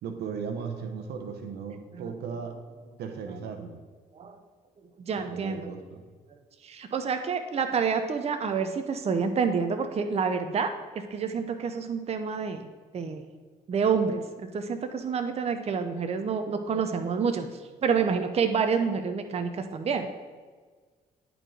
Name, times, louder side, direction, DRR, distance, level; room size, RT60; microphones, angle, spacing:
voice 1, 0.0-2.6 3.0-3.8 5.2-6.0, right 6 dB, 85° right, 5 dB, 0.9 m, -36 dB
voice 2, 5.0-5.7 6.6-12.7 12.9-13.2 13.7-17.5 17.8-20.1, right 5 dB, 40° right, 7 dB, 0.7 m, -28 dB
10.5 x 4.6 x 3.8 m, 1.5 s
cardioid pair, 90°, 16 cm